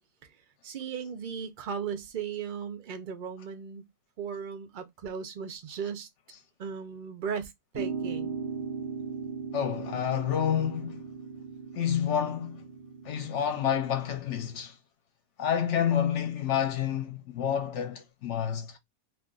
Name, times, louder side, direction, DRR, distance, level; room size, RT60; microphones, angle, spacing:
voice 1, 0.6-3.8 4.2-6.1 6.6-8.3, right 7 dB, 60° right, 0.5 m, -37 dB
sound 1, 7.7-14.2, right 5 dB, 30° right, 0.8 m, -38 dB
voice 2, 9.5-11.1 11.7-12.7 13.0-14.8 15.4-18.8, left 9 dB, 65° left, 0.8 m, -29 dB
2.4 x 2.4 x 3.6 m
omnidirectional pair, 1.5 m